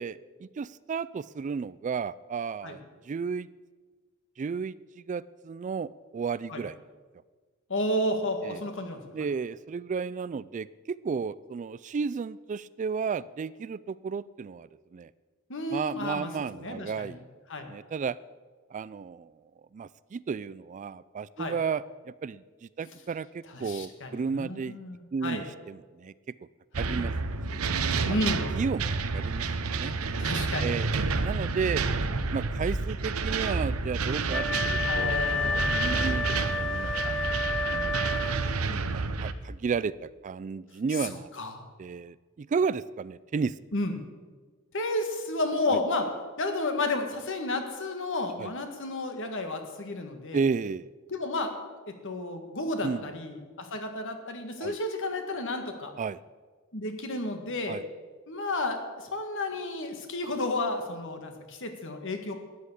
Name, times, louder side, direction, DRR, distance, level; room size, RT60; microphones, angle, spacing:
voice 1, 0.0-3.5 4.4-6.8 8.4-8.6 9.1-15.1 15.7-17.2 17.7-18.2 18.7-19.3 19.7-24.8 25.1-26.1 26.4-26.5 26.8-27.1 27.5-27.6 28.1-28.2 28.6-29.5 29.8-29.9 30.6-31.8 32.3-37.1 37.7-38.0 38.7-41.3 41.8-43.6 45.7-45.8 48.4-48.5 50.3-50.9 52.8-53.1 54.6-54.8 56.0-56.2 57.7-57.8, right 5 dB, 35° right, 19 dB, 0.3 m, -33 dB
voice 2, 7.7-9.0 15.5-16.3 16.6-17.1 17.5-17.7 21.4-21.5 23.5-25.4 26.8-26.9 28.1-28.5 30.2-30.7 34.8-35.8 41.0-41.5 43.7-43.9 44.7-50.4 51.1-51.6 51.9-55.9 56.7-57.8 58.3-62.3, left 2 dB, 60° left, 6 dB, 2.0 m, -32 dB
sound 1, 26.7-39.3, right 4 dB, 80° right, 0.9 m, -29 dB
Wind instrument woodwind instrument, 34.3-38.7, left 3 dB, 5° left, 0.9 m, -30 dB
13.0 x 9.8 x 8.4 m, 1.4 s
head